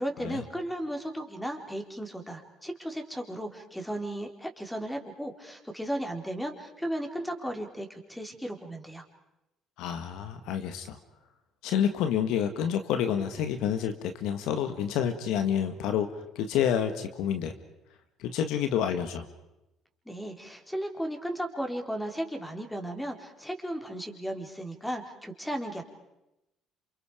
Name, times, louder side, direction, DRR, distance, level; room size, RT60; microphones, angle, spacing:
voice 1, 0.0-9.0 20.1-25.8, right 1 dB, 5° left, 3 dB, 4.3 m, -35 dB
voice 2, 9.8-11.0 11.6-17.5 18.2-19.3, left 9 dB, 75° left, 8 dB, 1.7 m, -28 dB
29.5 x 27.5 x 5.1 m, 0.92 s
supercardioid pair, 70°, 0 cm